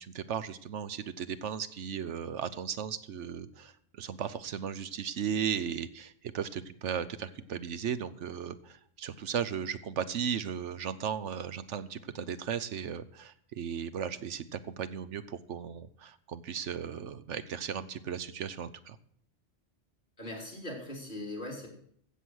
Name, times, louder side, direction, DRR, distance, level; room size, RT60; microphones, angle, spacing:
voice 1, 0.0-19.0, right 8 dB, 75° right, 14 dB, 1.1 m, -36 dB
voice 2, 20.2-21.7, left 1 dB, 40° left, -1 dB, 3.6 m, -40 dB
15.5 x 7.6 x 6.3 m, 0.63 s
omnidirectional pair, 1.2 m